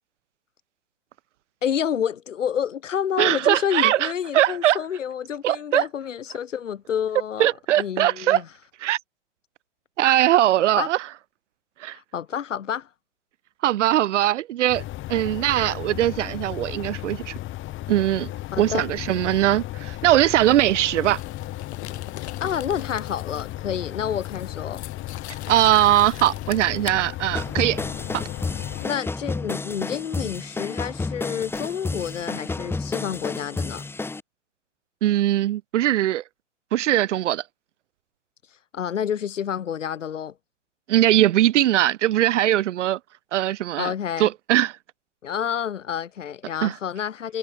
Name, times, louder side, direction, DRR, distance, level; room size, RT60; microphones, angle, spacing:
voice 1, 1.6-7.5 7.8-8.5 10.8-10.9 11.9-12.9 18.5-18.9 22.4-24.8 28.7-33.8 38.7-40.3 43.8-44.3 45.2-47.4, left 8 dB, 80° left, 1.7 m, -29 dB
voice 2, 3.2-4.8 5.4-5.8 7.4-8.4 8.8-9.0 10.0-11.0 11.8-12.0 13.6-14.8 15.1-17.3 17.9-18.3 18.6-21.2 25.5-27.8 28.1-28.2 35.0-36.2 36.7-37.4 40.9-43.0 43.3-43.9 44.2-44.7 46.6-46.7, right 13 dB, 75° right, 0.5 m, -20 dB
sound 1, 14.7-28.9, left 15 dB, 30° left, 3.0 m, -35 dB
sound 2, 20.6-23.6 23.9-27.0 30.2-30.3 31.5-32.3, left 14 dB, 60° left, 1.6 m, -42 dB
sound 3, 27.3-34.2, left 3 dB, 5° left, 1.2 m, -31 dB
hypercardioid pair, 110°, 37 cm